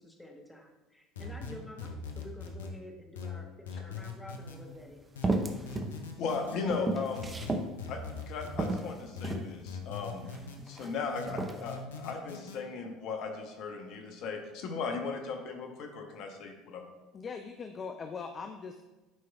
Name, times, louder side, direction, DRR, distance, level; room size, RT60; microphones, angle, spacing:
voice 1, 0.0-5.1, left 1 dB, 10° left, 1 dB, 1.2 m, -49 dB
sound 1, 1.2-2.7 3.2-4.6 5.2-6.6 7.2-8.7 9.2-10.6 11.2-12.6, left 5 dB, 80° left, 0.7 m, -41 dB
sound 2, 4.4-4.5 5.2-5.9 6.3-7.7 8.2-8.3 8.6-9.5 10.2-10.9 11.3-11.6, right 2 dB, 25° right, 0.8 m, -33 dB
voice 2, 6.2-7.3 7.9-8.0 8.3-10.3 10.7-16.9, left 4 dB, 55° left, 3 dB, 1.0 m, -37 dB
voice 3, 17.1-18.8, left 5 dB, 35° left, 6 dB, 0.5 m, -40 dB
10.5 x 4.6 x 2.4 m, 1.1 s
figure-of-eight pair, 65°, 0 cm